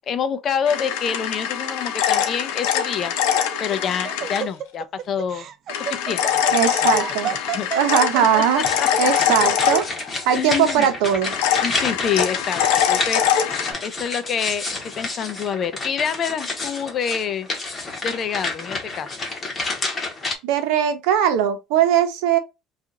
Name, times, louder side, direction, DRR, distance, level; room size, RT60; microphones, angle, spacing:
voice 1, 0.1-3.2 3.6-5.5 5.8-7.0 7.2-7.7 8.8-9.3 10.3-10.9 11.6-14.6 15.0-17.5 18.0-19.2, left 7 dB, 35° left, 0.5 m, -27 dB
sound 1, 0.7-4.4 5.7-10.3 11.2-13.7, left 9 dB, 90° left, 0.7 m, -23 dB
Laughter, 3.3-8.8, right 9 dB, 45° right, 0.4 m, -31 dB
voice 2, 6.5-7.3 7.8-8.6 9.0-9.9 10.3-11.3 20.4-22.4, right 9 dB, 80° right, 0.8 m, -20 dB
sound 2, 8.6-20.4, left 3 dB, 20° left, 1.1 m, -30 dB
2.9 x 2.4 x 3.6 m
cardioid pair, 145°, 0 cm